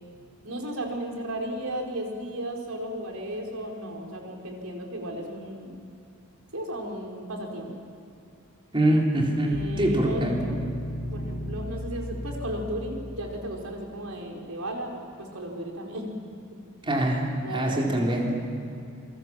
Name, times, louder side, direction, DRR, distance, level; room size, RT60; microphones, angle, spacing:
voice 1, 0.4-5.8 6.5-7.7 9.5-10.6 11.1-14.9 15.2-16.1 17.4-18.4, right 1 dB, 75° right, 1 dB, 4.7 m, -35 dB
voice 2, 8.7-10.4 16.8-18.3, right 1 dB, 25° right, -2 dB, 3.8 m, -24 dB
sound 1, 9.5-12.9, left 1 dB, 40° left, 7.9 m, -34 dB
28.0 x 23.0 x 7.5 m, 2.6 s
head